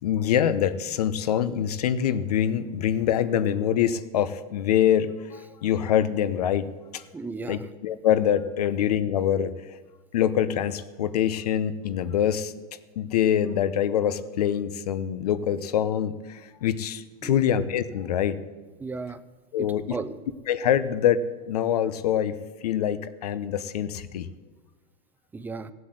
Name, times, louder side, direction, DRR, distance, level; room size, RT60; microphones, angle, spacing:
voice 1, 0.0-6.7 6.9-7.0 7.5-9.5 10.1-12.5 13.0-18.4 19.5-20.0 20.5-22.4 22.6-24.3, left 9 dB, 85° left, 14 dB, 1.0 m, -25 dB
voice 2, 7.1-7.7 17.2-17.4 18.8-19.2 19.6-20.2 25.3-25.7, right 4 dB, 10° right, 12 dB, 0.6 m, -35 dB
16.0 x 8.0 x 7.8 m, 1.3 s
supercardioid pair, 145°, 19 cm